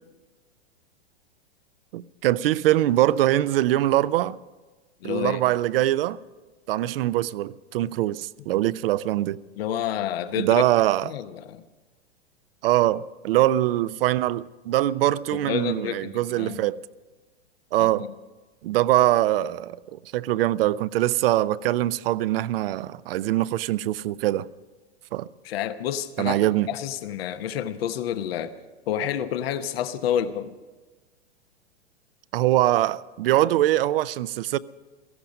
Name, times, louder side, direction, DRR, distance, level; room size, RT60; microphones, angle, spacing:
voice 1, 1.9-4.4 5.0-6.2 6.7-9.4 10.4-11.1 12.6-16.8 17.7-18.1 18.6-24.5 25.1-25.3 26.2-26.7 32.3-34.6, right 14 dB, 60° right, 0.6 m, -23 dB
voice 2, 5.0-5.4 9.6-10.6 11.0-11.6 15.3-16.6 17.8-18.1 25.4-26.4 26.7-28.6 28.9-30.5, left 10 dB, 60° left, 1.0 m, -29 dB
17.0 x 15.0 x 5.3 m
hypercardioid pair, 105°, 33 cm